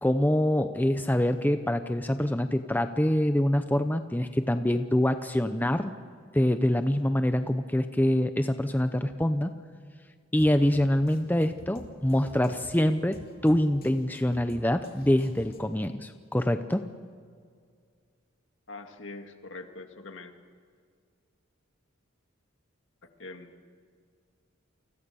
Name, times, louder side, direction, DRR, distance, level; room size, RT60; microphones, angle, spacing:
voice 1, 0.0-5.9 6.3-9.5 10.3-16.8, left 1 dB, 10° left, 9 dB, 0.7 m, -25 dB
Drum kit, 10.4-15.9, left 1 dB, 45° left, 2.8 m, -50 dB
voice 2, 18.7-20.3 23.2-23.8, left 3 dB, 60° left, 6 dB, 2.2 m, -43 dB
29.5 x 25.0 x 7.0 m, 2.1 s
head